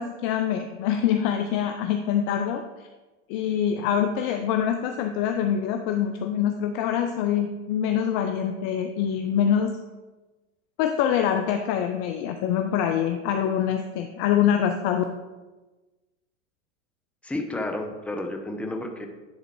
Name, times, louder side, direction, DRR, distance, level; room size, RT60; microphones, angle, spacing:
voice 1, 0.0-2.6 3.3-9.8 10.8-15.0, left 9 dB, 35° left, 7 dB, 0.4 m, -25 dB
voice 2, 17.2-19.1, left 1 dB, 5° left, 4 dB, 0.7 m, -31 dB
10.5 x 3.6 x 4.4 m, 1.2 s
hypercardioid pair, 110°, 40 cm